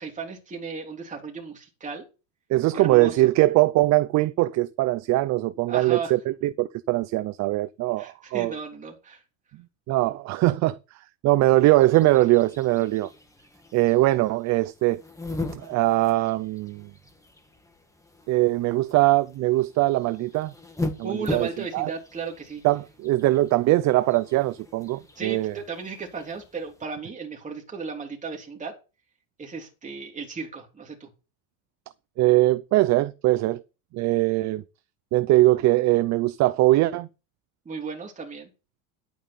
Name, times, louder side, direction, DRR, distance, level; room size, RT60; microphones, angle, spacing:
voice 1, 0.0-2.1 2.7-3.2 5.7-6.1 8.0-9.2 21.0-22.6 25.1-28.7 29.4-31.1 37.6-38.5, right 5 dB, 20° right, 3.3 m, -35 dB
voice 2, 2.5-8.5 9.9-10.8 11.2-13.1 13.7-15.0 15.5-16.9 18.3-20.5 21.0-21.9 22.6-25.5 32.2-33.6 33.9-34.6 35.1-37.1, right 18 dB, 40° right, 0.6 m, -21 dB
sound 1, 11.5-26.8, left 2 dB, 5° left, 1.7 m, -40 dB
11.5 x 8.8 x 4.4 m
supercardioid pair, 140°, 41 cm